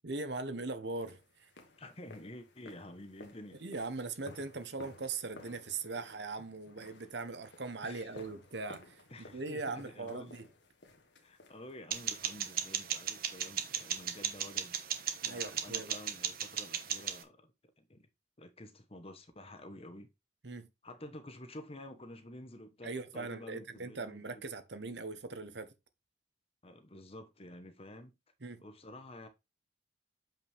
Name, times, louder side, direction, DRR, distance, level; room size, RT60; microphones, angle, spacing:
voice 1, 0.0-1.5 3.6-10.5 15.2-16.0 20.4-20.7 22.8-25.7 28.4-28.6, right 3 dB, 75° right, 1.1 m, -40 dB
sound 1, 1.0-12.1, left 2 dB, 85° left, 1.6 m, -56 dB
voice 2, 1.8-3.6 7.8-8.1 9.1-10.3 11.2-14.8 15.2-17.5 17.8-18.1 18.4-20.1 20.8-24.4 26.6-28.1 28.6-29.3, left 1 dB, 35° left, 1.2 m, -50 dB
sound 2, 11.9-17.2, right 9 dB, 55° right, 1.2 m, -37 dB
7.4 x 5.7 x 3.5 m
head